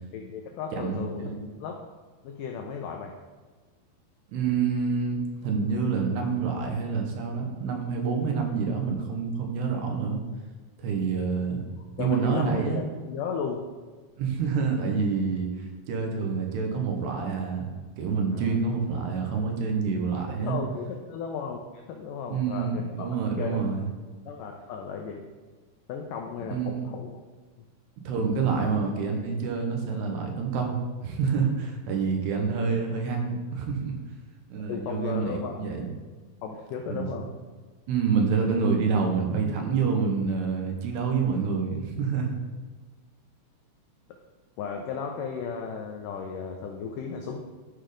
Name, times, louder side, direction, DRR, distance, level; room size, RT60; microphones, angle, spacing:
voice 1, 0.1-1.3 1.6-1.8 2.2-3.2 12.0-13.7 18.3-18.6 20.5-21.6 21.9-23.1 23.4-23.7 24.3-25.2 25.9-27.2 34.7-35.6 36.4-37.3 44.6-47.4, left 6 dB, 85° left, 2 dB, 1.9 m, -35 dB
voice 2, 0.7-1.4 4.3-10.2 10.8-11.6 12.0-12.8 14.2-17.7 18.0-20.6 22.3-23.9 26.5-26.9 28.0-34.0 34.5-35.9 36.9-37.3 37.9-42.3, right 5 dB, 85° right, 2 dB, 3.3 m, -27 dB
12.0 x 4.5 x 5.0 m, 1.4 s
omnidirectional pair, 4.6 m